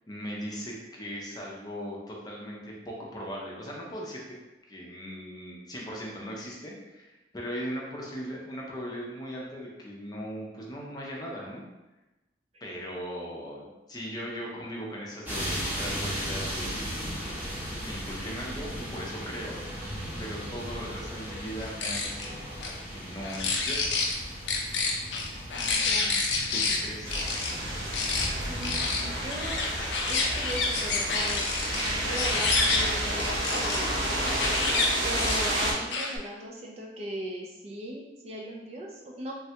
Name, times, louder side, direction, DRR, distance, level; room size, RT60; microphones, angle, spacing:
voice 1, 0.1-4.3 4.6-11.6 12.6-16.9 17.8-19.5 20.2-22.4 22.9-24.0 26.5-27.1, equal, 20° left, -3 dB, 0.5 m, -38 dB
sound 1, 15.2-34.6, equal, 10° right, 0.7 m, -38 dB
sound 2, 21.6-22.3 22.6-22.7 23.2-24.1 24.5-26.8 27.1-27.5 27.9-28.3 28.6-33.8 34.3-34.8 35.2-36.2, left 4 dB, 75° left, 0.5 m, -28 dB
voice 2, 25.6-26.2 28.5-29.6 30.1-34.2 35.0-39.3, right 1 dB, 35° right, -1 dB, 0.3 m, -39 dB
sound 3, 27.0-35.7, right 1 dB, 85° right, 0.8 m, -31 dB
3.2 x 2.2 x 2.8 m, 1.0 s
head